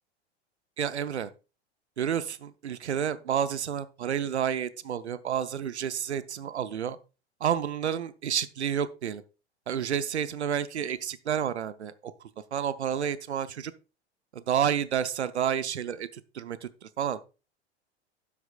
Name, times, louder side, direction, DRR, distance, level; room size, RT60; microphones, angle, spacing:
voice 1, 0.8-1.3 2.0-7.0 7.4-9.2 9.7-12.1 12.5-13.7 14.3-17.2, right 9 dB, 75° right, 0.7 m, -30 dB
12.0 x 8.4 x 2.3 m
figure-of-eight pair, 85°, 34 cm